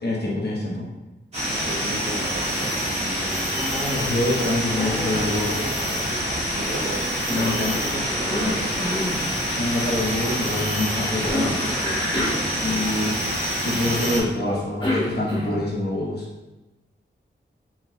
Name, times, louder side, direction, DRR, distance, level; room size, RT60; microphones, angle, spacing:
voice 1, 0.0-0.9 3.9-5.7 7.3-7.7 9.5-11.6 12.6-13.2 13.6-16.3, left 1 dB, 55° left, -4 dB, 1.1 m, -25 dB
sound 1, 1.3-14.2, equal, 35° right, 1.5 m, -26 dB
voice 2, 1.5-3.6 6.5-8.9, right 2 dB, 75° right, 0 dB, 0.7 m, -34 dB
Cough, 3.5-4.4 4.7-6.7 7.3-9.2 11.2-13.2 14.4-15.8, left 1 dB, 25° left, 1.4 m, -29 dB
4.4 x 3.9 x 2.3 m, 1.1 s
wide cardioid pair, 155°, 20 cm